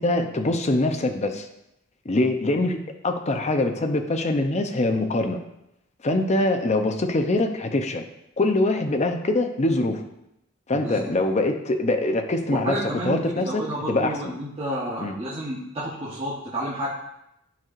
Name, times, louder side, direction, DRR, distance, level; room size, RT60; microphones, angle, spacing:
voice 1, 0.0-1.5 2.1-5.4 6.0-8.0 8.4-10.1 10.7-12.8 13.0-14.3 15.0-15.1, left 2 dB, 35° left, 5 dB, 0.6 m, -23 dB
voice 2, 10.7-11.1 12.6-16.9, right 1 dB, 30° right, -7 dB, 1.0 m, -30 dB
10.0 x 4.6 x 2.5 m, 0.83 s
head